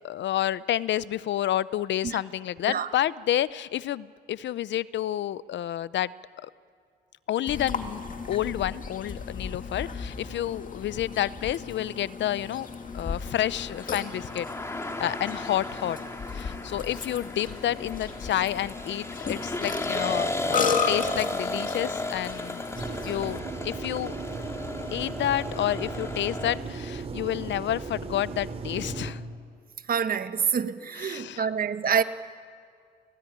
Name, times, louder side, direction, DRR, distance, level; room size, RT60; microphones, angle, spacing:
voice 1, 0.0-6.1 6.4-6.5 7.3-8.0 8.3-12.7 12.9-14.5 14.8-16.0 16.3-22.6 23.1-23.4 23.6-24.1 24.9-29.2 31.0-31.4, left 12 dB, 65° left, 0.6 m, -29 dB
Burping eructation, 7.5-23.4, left 5 dB, 40° left, 2.4 m, -35 dB
sound 1, 13.1-26.6, left 2 dB, 15° left, 2.3 m, -34 dB
sound 2, 22.7-29.1, right 4 dB, 30° right, 2.8 m, -36 dB
voice 2, 29.9-32.0, right 7 dB, 45° right, 1.3 m, -27 dB
29.0 x 18.5 x 9.9 m
cardioid pair, 90°, 20 cm